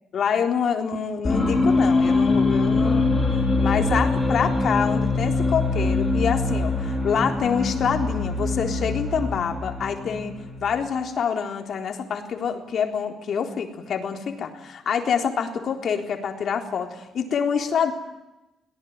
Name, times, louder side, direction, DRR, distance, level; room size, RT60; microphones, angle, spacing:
voice 1, 0.1-3.2 3.6-17.9, left 7 dB, 60° left, 5 dB, 3.8 m, -26 dB
sound 1, 1.2-10.8, left 3 dB, 20° left, 7.1 m, -23 dB
23.5 x 18.0 x 9.6 m, 0.99 s
cardioid pair, 90°, 0 cm